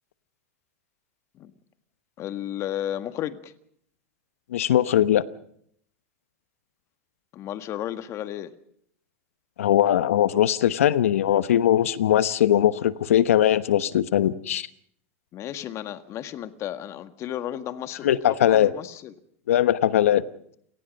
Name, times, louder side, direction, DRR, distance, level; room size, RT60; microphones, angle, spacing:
voice 1, 2.2-3.5 7.3-8.5 15.3-19.1, left 11 dB, 40° left, 11 dB, 1.7 m, -33 dB
voice 2, 4.5-5.2 9.6-14.7 18.0-18.7 19.5-20.2, left 11 dB, 85° left, 15 dB, 1.1 m, -20 dB
29.5 x 18.5 x 5.4 m, 0.66 s
hypercardioid pair, 110°, 7 cm